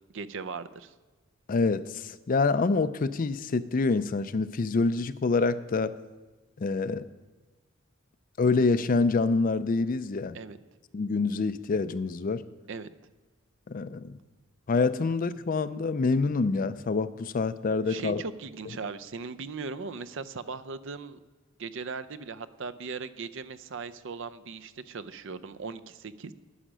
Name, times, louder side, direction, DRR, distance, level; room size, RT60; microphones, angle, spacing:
voice 1, 0.1-0.9 10.3-10.6 12.7-12.9 17.9-21.2 21.6-26.3, right 4 dB, 60° right, 14 dB, 0.5 m, -38 dB
voice 2, 1.5-5.9 6.6-7.1 8.4-10.4 10.9-12.4 13.7-14.2 14.7-18.2, left 4 dB, 40° left, 14 dB, 0.4 m, -26 dB
10.0 x 9.9 x 6.2 m, 1.2 s
head